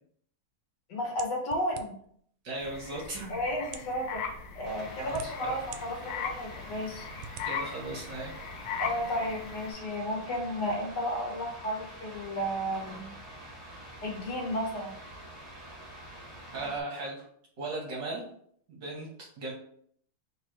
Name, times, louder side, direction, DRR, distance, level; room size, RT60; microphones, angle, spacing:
voice 1, 0.9-1.9 3.3-4.2 4.5-7.1 8.8-13.1 14.0-14.9, equal, 55° left, 0 dB, 1.7 m, -33 dB
sound 1, 1.2-2.2 3.0-3.1 3.6-4.0 4.7-5.8 6.3-6.4 7.2-7.5, right 8 dB, 80° right, 1.4 m, -44 dB
voice 2, 2.4-3.3 5.1-5.6 7.4-8.3 16.5-17.2 17.6-18.2 18.7-19.1 19.4-19.5, right 2 dB, 60° right, -3 dB, 1.6 m, -37 dB
sound 2, 2.6-9.7, left 6 dB, 70° left, 1.2 m, -39 dB
sound 3, 4.6-16.8, right 1 dB, 35° right, 1.6 m, -46 dB
3.8 x 3.0 x 4.5 m, 0.64 s
omnidirectional pair, 2.3 m